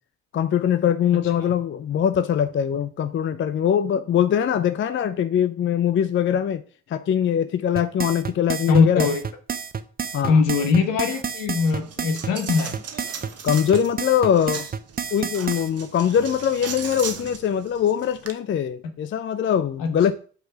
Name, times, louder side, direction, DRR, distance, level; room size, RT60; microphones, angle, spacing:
voice 1, 0.3-6.6 6.9-9.1 10.1-10.3 13.4-14.7 15.1-20.1, left 9 dB, 35° left, 0.5 m, -22 dB
voice 2, 1.1-1.5 8.7-9.2 10.3-12.8 19.8-20.1, left 5 dB, 70° left, 1.2 m, -21 dB
sound 1, 7.8-15.7, right 6 dB, 25° right, 0.6 m, -30 dB
Coin (dropping), 11.6-18.3, right 6 dB, 45° right, 1.0 m, -38 dB
5.1 x 4.0 x 5.5 m
hypercardioid pair, 40°, 34 cm